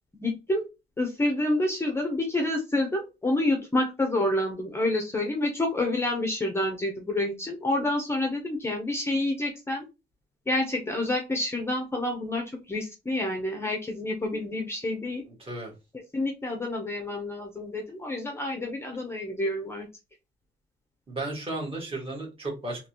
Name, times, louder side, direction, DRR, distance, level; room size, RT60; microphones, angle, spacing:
voice 1, 0.2-0.7 1.0-9.8 10.5-15.2 16.1-19.9, left 1 dB, 15° left, 3 dB, 0.6 m, -28 dB
voice 2, 15.4-15.7 21.1-22.9, right 2 dB, 30° right, -1 dB, 1.6 m, -34 dB
3.7 x 2.8 x 2.8 m, 0.26 s
wide cardioid pair, 175°, 19 cm